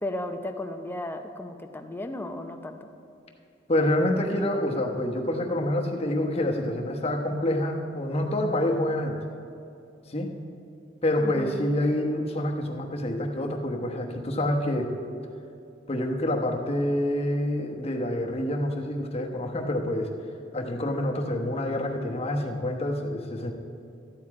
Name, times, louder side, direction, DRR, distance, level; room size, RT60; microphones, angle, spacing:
voice 1, 0.0-2.9 11.2-11.6, left 1 dB, 10° left, 5 dB, 0.6 m, -34 dB
voice 2, 3.7-9.2 10.1-10.3 11.0-14.9 15.9-20.1 20.5-23.5, left 1 dB, 35° left, 1 dB, 1.1 m, -27 dB
13.5 x 9.5 x 4.8 m, 2.6 s
head